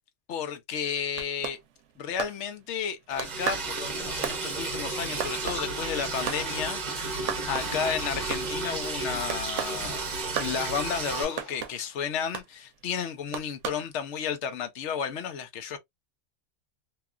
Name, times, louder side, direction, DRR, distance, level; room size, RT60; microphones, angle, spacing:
voice 1, 0.3-1.6 2.0-10.0 10.4-15.8, left 7 dB, 70° left, 0.9 m, -32 dB
sound 1, 0.8-2.9 3.2-6.5 6.8-6.9 7.1-7.9 8.2-8.7 9.3-9.8 10.4-10.6 11.4-11.8 12.3-12.5 13.3-13.9, right 8 dB, 75° right, 0.9 m, -34 dB
Liquid, 3.1-11.2, right 3 dB, 45° right, 0.7 m, -33 dB
sound 2, 6.1-7.2 7.6-12.1, left 1 dB, 20° left, 0.7 m, -48 dB
2.9 x 2.3 x 2.2 m
omnidirectional pair, 1.3 m